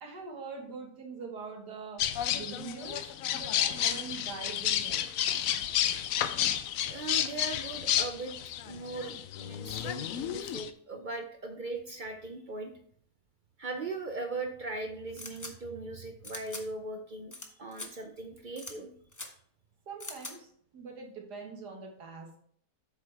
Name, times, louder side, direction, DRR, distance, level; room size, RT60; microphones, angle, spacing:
voice 1, 0.0-2.0 2.3-5.0 19.9-20.5 20.7-22.3, right 5 dB, 75° right, 1 dB, 2.2 m, -43 dB
sound 1, 2.0-10.7, left 10 dB, 70° left, 0.8 m, -31 dB
voice 2, 6.9-8.3 8.6-12.7 13.6-17.3 17.6-18.9, right 3 dB, 50° right, 5 dB, 0.5 m, -39 dB
sound 2, 15.2-15.5 16.2-16.6 17.3-17.5 17.7-17.9 18.6-18.7 19.1-19.3 20.0-20.3, left 2 dB, 20° left, 0.5 m, -42 dB
8.2 x 7.1 x 3.4 m, 0.63 s
omnidirectional pair, 1.8 m